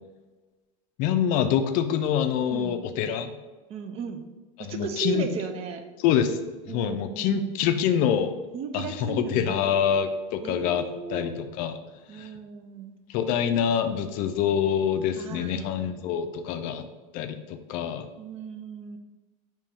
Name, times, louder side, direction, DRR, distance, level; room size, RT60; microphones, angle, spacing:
voice 1, 1.0-3.3 4.6-5.3 6.0-6.4 6.7-8.3 8.7-11.8 12.1-12.3 13.1-16.9 17.1-18.1, left 8 dB, 50° left, 8 dB, 0.4 m, -26 dB
voice 2, 2.5-2.8 3.7-4.2 4.6-5.8 6.7-7.6 8.5-9.7 10.4-11.4 12.1-12.9 15.2-15.7 18.2-19.0, right 6 dB, 35° right, 7 dB, 0.4 m, -36 dB
3.5 x 2.9 x 4.3 m, 1.2 s
supercardioid pair, 145°, 17 cm